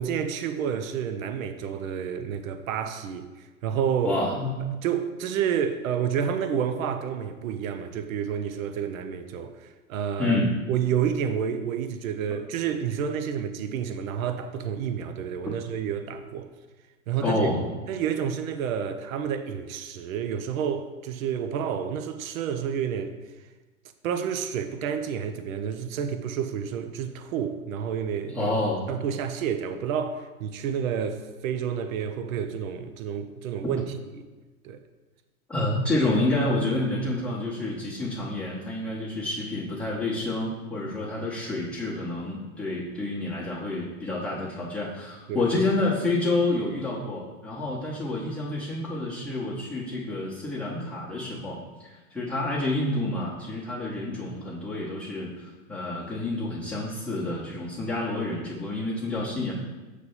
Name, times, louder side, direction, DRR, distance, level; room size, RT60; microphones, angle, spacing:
voice 1, 0.0-4.1 4.8-10.4 10.7-16.5 17.1-17.5 17.9-23.2 24.0-28.5 28.9-33.8 34.1-34.3 34.6-34.8 45.3-45.5 47.7-47.8, right 8 dB, 75° right, 0.7 m, -29 dB
voice 2, 4.0-4.5 10.2-10.5 17.2-17.6 28.3-28.8 35.5-51.6 51.9-59.5, left 2 dB, 5° left, 1.0 m, -28 dB
6.7 x 3.3 x 5.4 m
hypercardioid pair, 140°, 41 cm